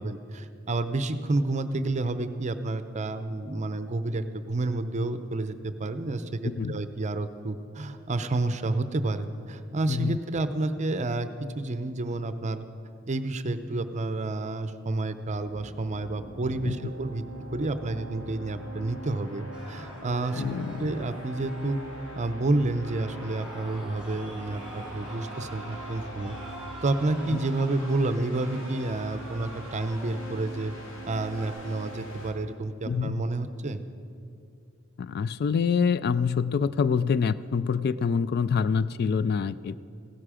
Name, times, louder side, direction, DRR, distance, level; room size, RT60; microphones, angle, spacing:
voice 1, 0.0-11.3 11.6-12.6 13.1-17.2 17.5-20.4 20.8-21.8 22.2-26.4 26.8-30.7 31.1-33.8, right 2 dB, 35° right, 11 dB, 0.6 m, -30 dB
voice 2, 6.4-6.8 9.9-10.2 16.6-16.7 20.4-20.9 32.8-33.2 35.0-39.8, left 6 dB, 50° left, 16 dB, 0.3 m, -26 dB
sound 1, 15.3-32.3, right 1 dB, 70° left, 2.3 m, -43 dB
sound 2, 19.5-22.3 22.8-30.6 31.0-31.5, right 1 dB, 5° right, 3.0 m, -46 dB
15.5 x 12.0 x 5.0 m, 2.6 s
head